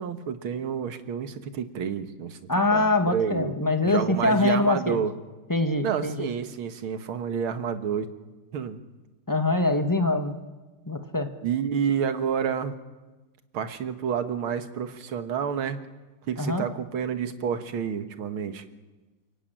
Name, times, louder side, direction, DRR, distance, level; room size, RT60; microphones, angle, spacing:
voice 1, 0.0-2.4 2.7-3.5 3.9-5.1 5.8-8.1 8.5-8.8 11.4-12.8 13.5-15.8 16.3-18.6, right 7 dB, 75° right, 9 dB, 2.2 m, -29 dB
voice 2, 2.5-5.0 5.5-6.3 9.3-10.4 10.9-11.3 16.4-16.6, left 2 dB, 10° left, 6 dB, 1.1 m, -24 dB
29.0 x 17.5 x 9.1 m, 1.2 s
omnidirectional pair, 2.3 m